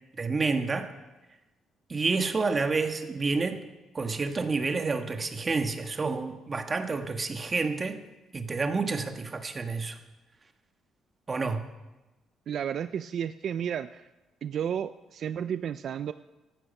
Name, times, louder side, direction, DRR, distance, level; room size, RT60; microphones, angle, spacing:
voice 1, 0.2-0.9 1.9-3.6 3.9-8.0 8.3-10.0 11.3-11.7, right 4 dB, 30° right, 7 dB, 1.4 m, -29 dB
voice 2, 12.5-14.1 14.4-16.1, right 8 dB, 60° right, 13 dB, 0.4 m, -32 dB
15.5 x 12.0 x 5.4 m, 1.1 s
cardioid pair, 100°, 0 cm